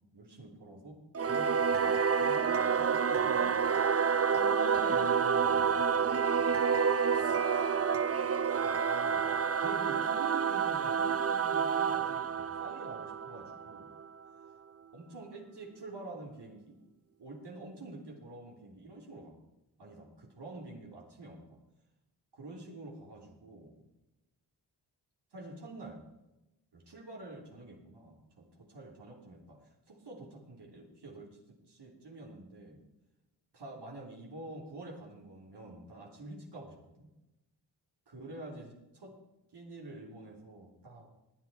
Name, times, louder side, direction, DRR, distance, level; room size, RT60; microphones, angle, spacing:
voice 1, 0.1-4.0 4.3-6.5 8.4-13.9 14.9-16.8 17.2-19.4 19.8-21.6 22.3-23.9 25.3-26.0 26.7-32.8 33.5-37.1 38.1-39.2 39.5-41.1, right 2 dB, 60° right, 0 dB, 3.4 m, -48 dB
Singing / Musical instrument, 1.1-14.0, right 6 dB, 30° right, 0.6 m, -29 dB
21.5 x 8.3 x 4.5 m, 0.96 s
cardioid pair, 45°, 45 cm